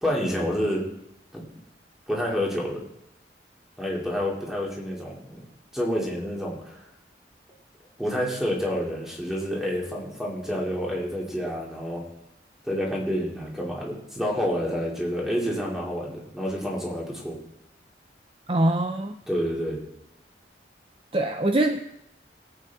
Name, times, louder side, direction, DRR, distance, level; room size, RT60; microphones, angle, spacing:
voice 1, 0.0-0.8 1.3-1.4 2.1-2.8 3.8-5.5 5.7-6.9 8.0-12.0 12.6-17.4 19.3-19.8, equal, 5° right, -3 dB, 2.6 m, -28 dB
voice 2, 18.5-19.1 21.1-21.9, right 1 dB, 30° right, 6 dB, 0.5 m, -23 dB
19.5 x 8.3 x 3.6 m, 0.81 s
head